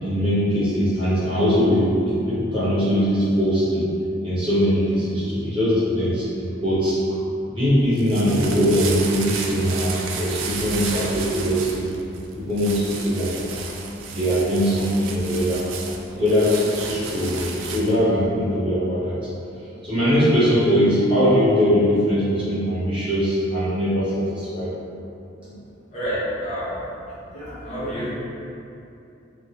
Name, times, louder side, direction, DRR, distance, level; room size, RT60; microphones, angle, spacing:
voice 1, 0.0-3.8 4.2-6.3 6.6-7.1 7.5-11.9 12.3-13.4 14.1-15.6 16.0-19.2 19.8-24.7 25.4-25.5, equal, 25° right, -13 dB, 1.1 m, -21 dB
sound 1, 7.8-18.0, right 5 dB, 80° right, 0.3 m, -33 dB
voice 2, 25.9-26.8 27.2-28.1, equal, 35° left, -11 dB, 0.9 m, -29 dB
3.5 x 2.1 x 2.9 m, 2.7 s
head